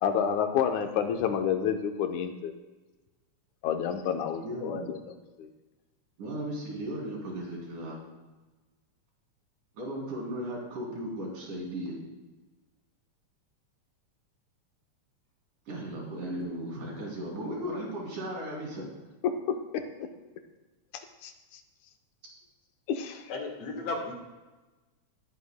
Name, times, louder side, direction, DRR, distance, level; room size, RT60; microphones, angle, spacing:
voice 1, 0.0-2.5 3.6-5.0 5.4-5.5 20.0-20.1 21.2-21.3 22.9-23.2, left 8 dB, 75° left, 6 dB, 2.1 m, -29 dB
voice 2, 4.4-4.9 6.2-8.0 9.8-12.0 15.7-18.8, right 1 dB, 90° right, -3 dB, 4.5 m, -36 dB
voice 3, 23.3-24.1, left 3 dB, 60° left, 2 dB, 2.3 m, -34 dB
19.0 x 8.8 x 2.2 m, 1.2 s
omnidirectional pair, 3.5 m